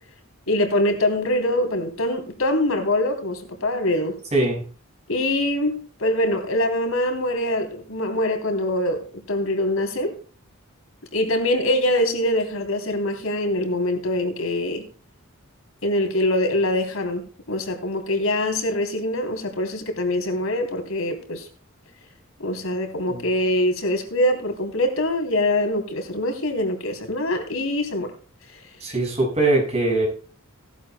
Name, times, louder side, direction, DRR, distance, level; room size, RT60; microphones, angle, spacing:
voice 1, 0.5-4.2 5.1-10.1 11.1-14.8 15.8-21.5 22.4-28.1, left 1 dB, 80° left, 3.4 m, -24 dB
voice 2, 4.3-4.6 23.1-23.3 28.8-30.1, right 2 dB, 30° right, 6.1 m, -21 dB
17.5 x 12.0 x 2.2 m
head